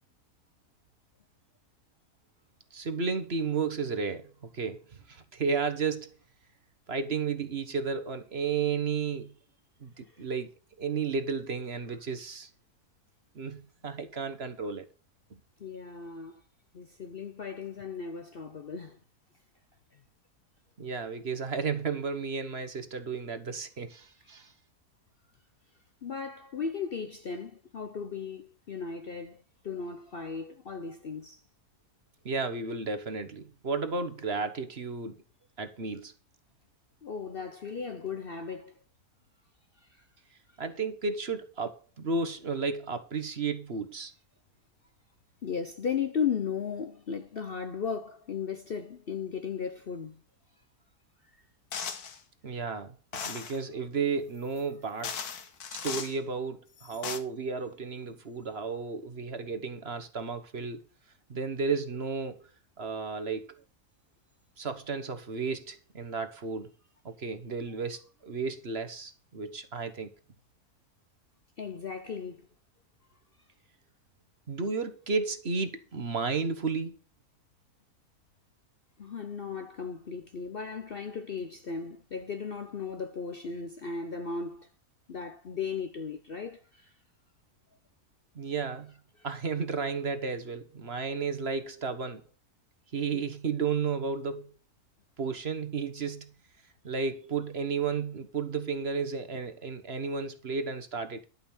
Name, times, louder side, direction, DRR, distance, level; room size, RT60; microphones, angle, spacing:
voice 1, 2.7-4.8 5.1-6.1 6.9-9.3 9.8-12.5 13.3-14.9 20.8-24.5 32.2-35.2 35.6-36.1 40.6-44.1 52.4-55.1 55.7-60.8 61.3-62.5 62.8-63.6 64.6-66.7 67.0-70.1 74.5-77.0 88.3-88.9 89.2-92.2 92.9-94.5 95.2-96.3 96.8-101.2, right 5 dB, 45° right, 1.3 m, -33 dB
voice 2, 15.6-16.4 16.7-19.0 26.0-31.4 37.0-38.7 39.8-40.1 45.4-50.2 51.2-51.4 71.6-72.5 79.0-84.7 85.1-86.9 93.1-93.2, left 6 dB, 50° left, 0.7 m, -36 dB
sound 1, 51.7-52.2 53.1-53.6 54.6-54.7 55.0-56.2 56.8-57.2, left 6 dB, 75° left, 1.7 m, -37 dB
12.0 x 5.6 x 7.1 m
omnidirectional pair, 1.6 m